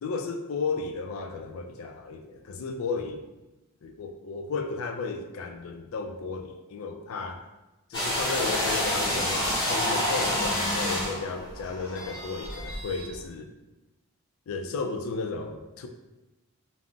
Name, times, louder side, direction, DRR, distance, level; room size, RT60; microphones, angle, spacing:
voice 1, 0.0-3.3 3.8-7.4 7.9-13.5 14.5-15.9, left 4 dB, 70° left, 4 dB, 0.3 m, -34 dB
sound 1, 7.9-13.1, left 1 dB, 20° left, 0.8 m, -28 dB
2.3 x 2.0 x 3.7 m, 1.0 s
head